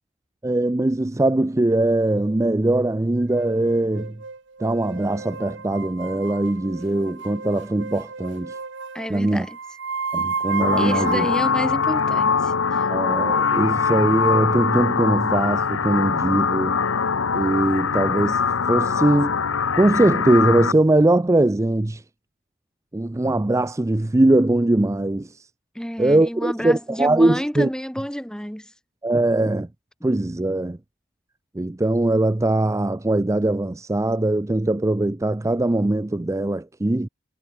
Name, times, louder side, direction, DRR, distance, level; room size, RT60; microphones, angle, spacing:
voice 1, 0.4-4.2 4.6-8.6 9.1-9.5 10.1-11.3 12.9-16.8 17.3-18.4 18.7-19.4 19.8-22.0 22.9-25.5 26.0-27.7 29.0-29.7 30.0-30.8 31.5-37.1, right 2 dB, 15° right, 0.4 m, -21 dB
sound 1, 3.3-11.5, right 5 dB, 60° right, 1.2 m, -32 dB
voice 2, 8.9-9.6 10.8-12.5 25.8-28.7 29.1-29.2, equal, 5° left, 1.8 m, -29 dB
sound 2, 10.6-20.7, left 5 dB, 85° left, 0.9 m, -22 dB
head